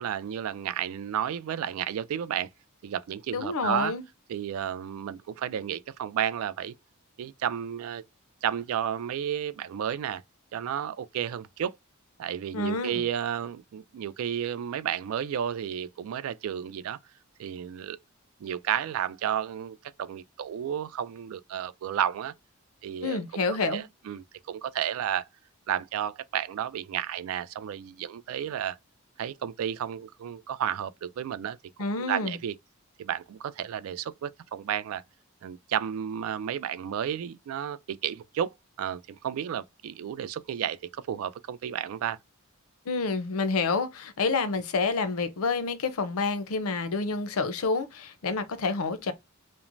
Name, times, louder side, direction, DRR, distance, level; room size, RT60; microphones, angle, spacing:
voice 1, 0.0-2.5 2.8-3.9 4.3-6.7 7.2-8.0 8.4-10.2 10.5-11.8 12.2-17.0 17.4-18.0 18.4-22.3 22.8-25.3 25.7-28.8 29.2-31.6 32.0-32.5 33.0-35.0 35.4-42.2, right 9 dB, 70° right, 0.3 m, -32 dB
voice 2, 3.3-4.0 12.5-13.0 23.0-23.8 31.8-32.4 42.9-49.1, left 4 dB, 80° left, 0.6 m, -28 dB
3.0 x 2.1 x 2.5 m
head